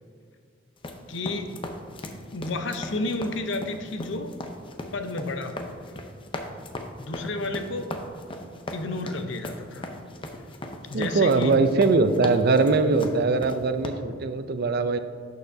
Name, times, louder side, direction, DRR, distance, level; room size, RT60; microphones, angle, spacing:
sound 1, 0.8-13.9, left 1 dB, 25° left, 0.6 m, -38 dB
voice 1, 1.1-1.5 2.3-4.3 4.9-5.7 7.0-7.9 8.7-9.9 10.9-11.6, left 2 dB, 70° left, 6 dB, 0.7 m, -31 dB
voice 2, 10.9-15.0, right 3 dB, 55° right, 10 dB, 0.5 m, -21 dB
11.5 x 6.7 x 2.7 m, 2.1 s
head